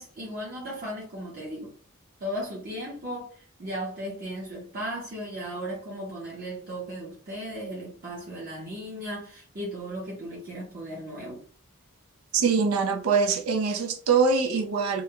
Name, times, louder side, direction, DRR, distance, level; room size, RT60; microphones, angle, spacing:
voice 1, 0.0-1.8 2.2-11.4 12.4-12.6, equal, 45° right, 0.7 m, -36 dB
voice 2, 12.3-15.0, right 5 dB, 90° right, 0.4 m, -23 dB
2.4 x 2.0 x 2.8 m
head